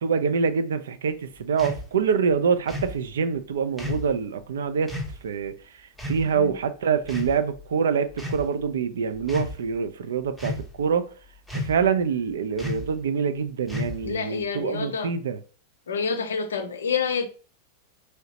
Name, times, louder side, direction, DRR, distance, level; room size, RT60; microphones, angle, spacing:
voice 1, 0.0-4.9 5.2-11.1 11.5-15.4, right 6 dB, 65° right, 0.3 m, -25 dB
sound 1, 1.6-1.8 2.7-3.0 3.8-4.1 4.9-5.1 6.0-6.3 7.0-7.6 8.1-8.5 9.2-9.5 10.4-10.8 11.5-11.9 12.6-12.9 13.7-14.2, left 2 dB, ahead, 0.7 m, -32 dB
voice 2, 14.0-15.1 15.9-17.3, left 6 dB, 65° left, 0.4 m, -28 dB
3.1 x 2.7 x 2.8 m
figure-of-eight pair, 90°, 0 cm